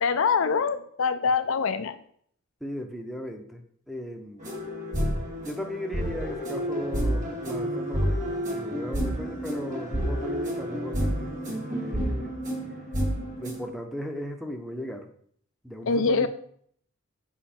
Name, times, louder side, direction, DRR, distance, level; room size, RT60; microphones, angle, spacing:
voice 1, 0.0-2.0 15.9-16.3, left 5 dB, 65° left, 10 dB, 0.5 m, -24 dB
voice 2, 2.6-4.5 5.4-8.2 8.5-12.3 13.4-15.1 15.6-16.3, equal, ahead, 5 dB, 0.7 m, -37 dB
sound 1, 4.4-13.7, equal, 35° right, 1.9 m, -30 dB
7.3 x 5.4 x 4.3 m, 0.62 s
head